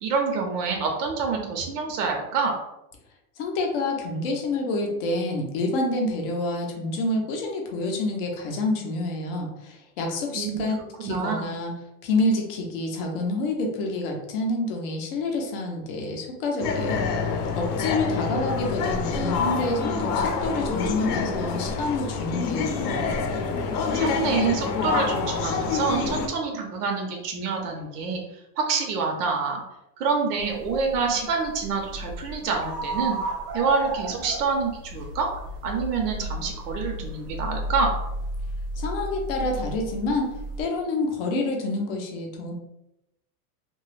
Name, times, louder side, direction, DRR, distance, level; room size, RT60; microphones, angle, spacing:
voice 1, 0.0-2.6 10.3-11.5 23.9-29.6 30.0-33.2 33.5-35.3 35.6-37.9, right 5 dB, 80° right, 2 dB, 0.8 m, -27 dB
voice 2, 3.4-11.7 12.0-17.0 17.6-23.2 38.8-40.3 40.6-42.5, left 2 dB, 40° left, 1 dB, 0.5 m, -28 dB
sound 1, 16.6-26.3, left 5 dB, 75° left, 0.7 m, -27 dB
sound 2, 30.4-40.6, right 1 dB, 35° right, 0.6 m, -34 dB
2.9 x 2.2 x 3.1 m, 0.88 s
supercardioid pair, 180°, 46 cm